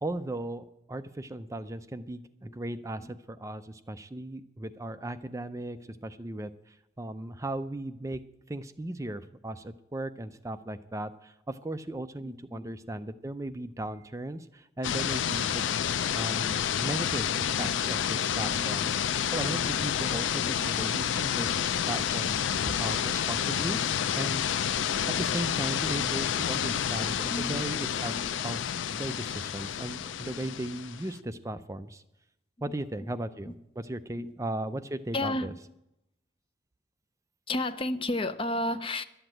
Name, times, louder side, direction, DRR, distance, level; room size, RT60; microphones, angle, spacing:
voice 1, 0.0-8.2 8.5-15.7 16.1-21.6 21.9-24.5 25.1-32.0 32.6-35.5, right 1 dB, 15° right, 0.4 m, -37 dB
voice 2, 12.2-12.7 17.4-18.0 18.4-18.9 19.7-19.8 20.4-20.6 26.6-26.8 27.2-27.7 28.1-28.3 30.2-30.3 33.0-33.1 33.5-33.6 34.2-34.3 35.1-35.5 37.5-39.1, left 1 dB, 30° left, 0.6 m, -34 dB
sound 1, 14.8-31.1, left 9 dB, 85° left, 0.4 m, -29 dB
12.0 x 8.0 x 8.9 m
head